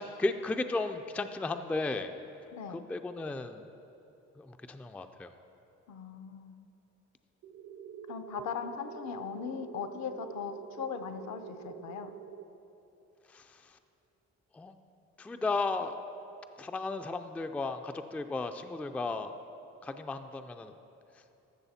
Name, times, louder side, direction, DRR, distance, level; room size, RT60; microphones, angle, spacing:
voice 1, 0.0-2.1 2.7-3.7 4.4-5.3 13.3-13.6 14.5-14.8 15.2-16.0 16.6-19.3 19.8-20.7, left 3 dB, 5° left, 8 dB, 0.3 m, -34 dB
voice 2, 2.5-2.8 5.9-6.6 8.1-12.1, left 7 dB, 65° left, 9 dB, 0.7 m, -39 dB
sound 1, 7.4-12.4, right 8 dB, 60° right, 0.6 m, -46 dB
13.5 x 6.6 x 4.2 m, 2.9 s
cardioid pair, 90°, 30 cm